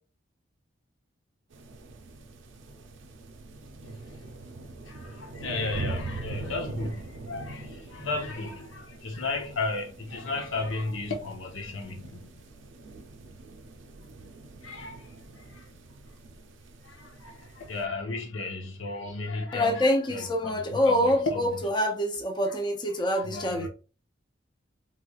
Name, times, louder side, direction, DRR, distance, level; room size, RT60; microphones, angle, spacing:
sound 1, 1.5-17.8, right 2 dB, 70° right, 0.5 m, -42 dB
voice 1, 4.9-12.4 14.6-15.0 15.3-15.6 16.8-21.5 23.1-23.7, left 3 dB, 90° left, 0.8 m, -34 dB
voice 2, 19.5-23.7, left 1 dB, 25° left, 0.5 m, -26 dB
3.2 x 3.1 x 2.3 m
head